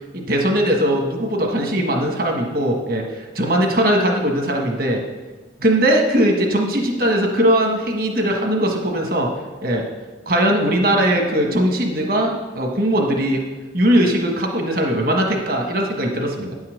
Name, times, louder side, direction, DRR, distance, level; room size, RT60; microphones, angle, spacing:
voice 1, 0.1-5.0 5.6-9.3 9.6-9.8 10.3-13.4 13.7-16.5, right 1 dB, 50° right, 1 dB, 1.3 m, -19 dB
9.7 x 5.6 x 6.4 m, 1.2 s
head